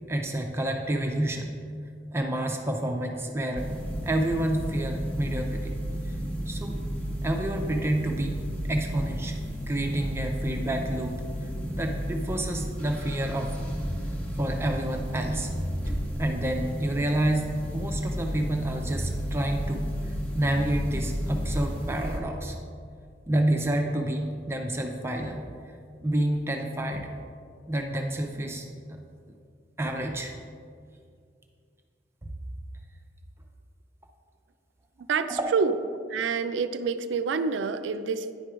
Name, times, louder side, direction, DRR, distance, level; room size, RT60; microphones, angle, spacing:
voice 1, 0.1-1.6 2.1-3.7 4.0-5.7 6.1-6.2 6.5-6.8 7.2-8.4 8.7-11.2 11.7-13.5 14.3-15.5 16.2-19.9 20.3-22.6 23.3-25.5 26.0-27.1 27.7-29.0 29.8-30.3 32.2-32.3 35.4-35.5, right 1 dB, 15° right, 2 dB, 0.5 m, -29 dB
sound 1, 3.6-22.2, equal, 10° left, 0.9 m, -32 dB
voice 2, 35.1-35.7 36.1-38.3, right 5 dB, 80° right, 10 dB, 0.4 m, -27 dB
10.0 x 4.5 x 4.9 m, 2.3 s
head